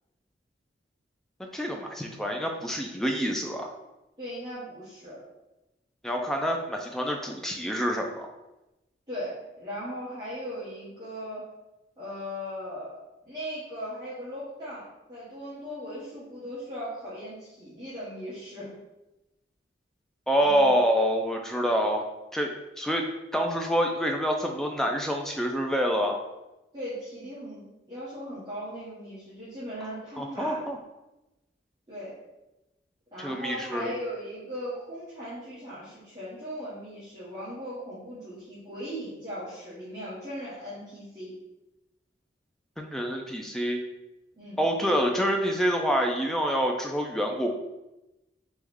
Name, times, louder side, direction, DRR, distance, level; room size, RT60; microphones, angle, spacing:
voice 1, 1.5-3.7 6.0-8.3 20.3-22.0 22.3-22.5 22.8-23.0 23.3-26.2 30.2-30.8 33.2-34.0 42.8-43.8 44.6-47.5, equal, 5° left, 1 dB, 0.3 m, -27 dB
voice 2, 4.2-5.2 9.1-11.4 12.0-12.9 13.2-18.8 20.4-20.7 26.7-30.6 31.9-32.1 33.1-41.3 44.4-44.6, equal, 20° right, -12 dB, 1.2 m, -38 dB
3.4 x 3.0 x 3.6 m, 0.97 s
head